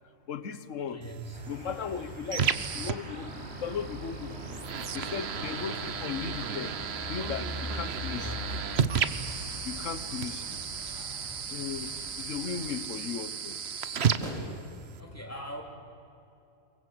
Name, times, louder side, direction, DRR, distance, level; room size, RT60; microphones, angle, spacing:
voice 1, 0.3-1.0 1.5-3.3 3.6-4.6 4.9-6.8 7.1-8.4 9.6-10.6 11.5-11.9 12.2-13.6, left 7 dB, 75° left, 13 dB, 1.4 m, -37 dB
voice 2, 0.9-1.4 8.1-8.4 14.7-15.6, right 1 dB, 10° left, 1 dB, 3.4 m, -42 dB
sound 1, 1.0-15.0, right 7 dB, 55° right, 1.1 m, -34 dB
sound 2, 1.3-12.8, left 1 dB, 5° right, 7.1 m, -42 dB
sound 3, 2.5-14.4, right 1 dB, 75° right, 5.5 m, -53 dB
23.5 x 22.5 x 7.9 m, 2.7 s
omnidirectional pair, 1.3 m